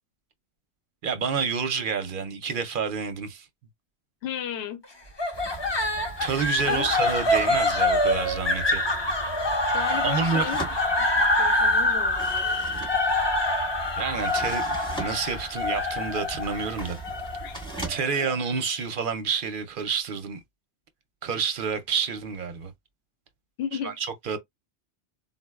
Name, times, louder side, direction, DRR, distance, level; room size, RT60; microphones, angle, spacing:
voice 1, 1.0-3.5 6.2-8.8 10.0-10.4 14.0-17.0 17.9-20.4 21.2-22.7 23.7-24.4, right 6 dB, 60° right, 0.7 m, -29 dB
voice 2, 4.2-4.8 6.6-6.9 9.7-10.6 11.0-12.7 17.4-17.6 23.6-24.0, left 9 dB, 70° left, 0.9 m, -34 dB
sound 1, 5.2-18.3, left 1 dB, 30° left, 0.5 m, -25 dB
sound 2, 5.3-17.9, right 4 dB, 5° left, 0.9 m, -40 dB
3.8 x 2.0 x 2.3 m
omnidirectional pair, 1.1 m